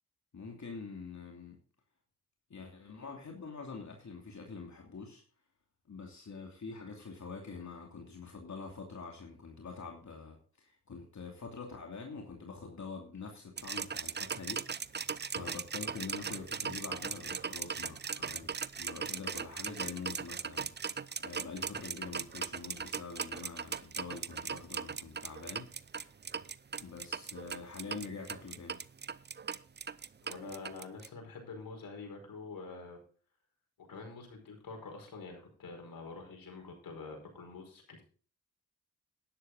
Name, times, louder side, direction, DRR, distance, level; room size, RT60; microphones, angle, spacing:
voice 1, 0.3-1.6 2.5-5.2 5.9-14.6 14.9-18.5 18.8-25.7 26.8-28.8, left 4 dB, 50° left, 1 dB, 2.8 m, -45 dB
sound 1, 13.6-31.1, right 6 dB, 30° right, 0.6 m, -38 dB
voice 2, 30.2-33.0 33.8-38.0, left 4 dB, 65° left, 2 dB, 5.1 m, -46 dB
11.0 x 11.0 x 4.0 m, 0.40 s
supercardioid pair, 50°, 36 cm